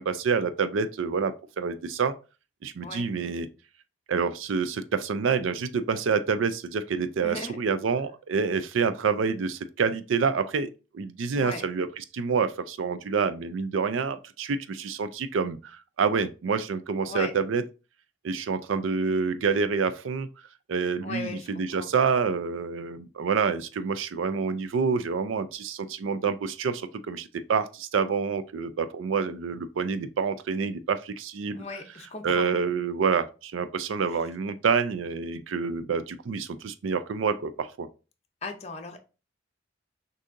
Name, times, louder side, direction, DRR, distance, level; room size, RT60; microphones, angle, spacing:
voice 1, 0.0-2.1 2.6-3.5 4.1-17.6 18.2-20.3 20.7-31.6 32.2-37.9, right 5 dB, 90° right, 0.4 m, -27 dB
voice 2, 7.2-7.6 11.3-11.6 17.1-17.3 21.0-21.9 31.5-32.5 38.4-39.0, left 3 dB, 35° left, 0.6 m, -37 dB
6.3 x 2.7 x 2.5 m
head